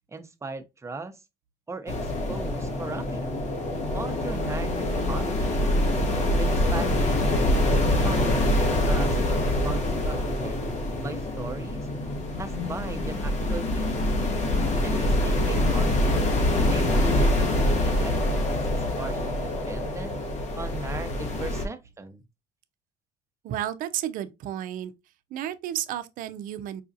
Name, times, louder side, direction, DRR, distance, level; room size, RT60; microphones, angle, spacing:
voice 1, 0.1-1.2 1.7-3.5 3.9-5.5 6.4-7.7 8.0-10.7 11.0-11.9 12.4-14.0 14.8-16.3 16.7-17.5 17.8-20.2 20.6-22.2, right 3 dB, 20° right, 0.7 m, -38 dB
sound 1, 1.9-21.7, left 1 dB, 50° left, 1.2 m, -25 dB
voice 2, 23.4-24.9 25.3-26.8, right 11 dB, 70° right, 0.5 m, -32 dB
4.8 x 2.3 x 2.6 m
supercardioid pair, 80°, 15 cm